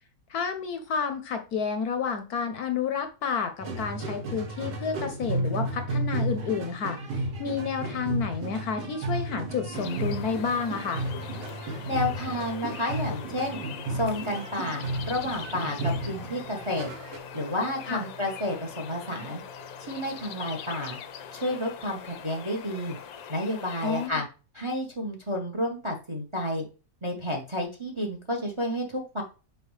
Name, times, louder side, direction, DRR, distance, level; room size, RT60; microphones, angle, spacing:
voice 1, 0.3-11.0 17.9-18.0 23.8-24.2, left 6 dB, 60° left, 7 dB, 1.2 m, -30 dB
sound 1, 3.6-17.2, right 1 dB, 70° right, 1.8 m, -33 dB
sound 2, 9.7-24.1, left 8 dB, 85° left, 1.5 m, -42 dB
voice 2, 11.9-13.6 13.9-16.9 17.3-19.4 19.8-21.0 21.3-23.0 23.3-24.2 24.5-26.6 27.0-29.2, left 1 dB, 20° right, 2 dB, 0.9 m, -31 dB
sound 3, 16.2-23.0, right 1 dB, 85° right, 3.9 m, -53 dB
6.4 x 4.8 x 3.2 m, 0.32 s
omnidirectional pair, 2.0 m